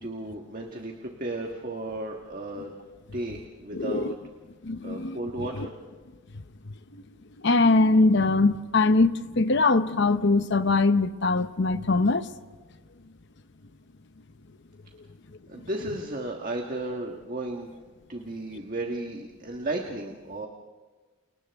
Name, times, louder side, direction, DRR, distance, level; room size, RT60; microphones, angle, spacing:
voice 1, 0.0-2.8 3.1-4.1 4.8-5.7 15.5-17.7 18.1-20.5, right 2 dB, 40° right, 1.5 m, -34 dB
voice 2, 3.7-4.1 4.6-5.2 7.4-12.3, left 3 dB, 55° left, 0.8 m, -22 dB
30.0 x 29.5 x 3.5 m
head